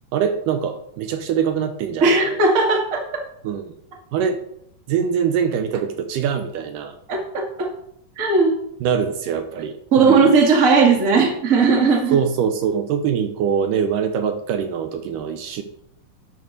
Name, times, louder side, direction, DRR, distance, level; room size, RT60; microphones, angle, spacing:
voice 1, 0.1-2.4 3.4-3.7 4.1-4.4 4.9-6.9 8.8-10.3 11.2-11.4 12.1-15.6, right 7 dB, 80° right, 7 dB, 2.3 m, -23 dB
voice 2, 2.0-3.0 7.1-7.7 8.2-8.5 9.9-12.2, right 4 dB, 30° right, 0 dB, 1.7 m, -17 dB
11.0 x 4.7 x 6.7 m, 0.72 s
omnidirectional pair, 4.0 m